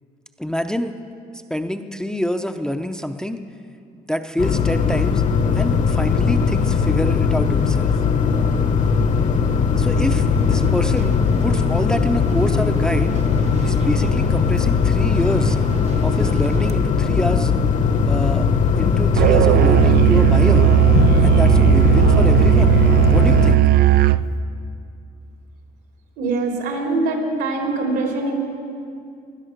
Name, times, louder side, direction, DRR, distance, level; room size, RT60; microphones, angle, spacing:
voice 1, 0.4-0.9 1.3-3.4 3.9-5.2 5.5-8.0 9.8-11.1 11.4-13.1 13.6-15.6 16.0-17.5 18.0-18.5 18.8-20.7 21.2-22.8 23.1-23.6, left 1 dB, 5° left, 6 dB, 0.6 m, -26 dB
sound 1, 4.4-23.6, left 6 dB, 45° left, 1.0 m, -19 dB
sound 2, 9.9-16.7, right 5 dB, 40° right, 0.7 m, -33 dB
Musical instrument, 19.2-24.3, right 15 dB, 70° right, 0.4 m, -15 dB
voice 2, 26.2-28.3, right 2 dB, 85° right, 1 dB, 3.4 m, -23 dB
18.5 x 11.0 x 6.6 m, 2.4 s
cardioid pair, 110°, 17 cm